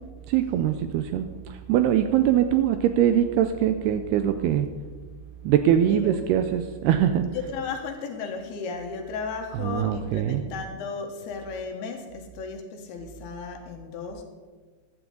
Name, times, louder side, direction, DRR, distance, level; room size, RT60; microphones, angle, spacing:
voice 1, 0.3-4.7 5.4-7.5 9.5-10.4, right 10 dB, 85° right, 9 dB, 2.4 m, -23 dB
voice 2, 5.9-6.3 7.3-14.2, left 5 dB, 70° left, 4 dB, 3.0 m, -35 dB
15.0 x 12.0 x 3.9 m, 1.4 s
omnidirectional pair, 5.0 m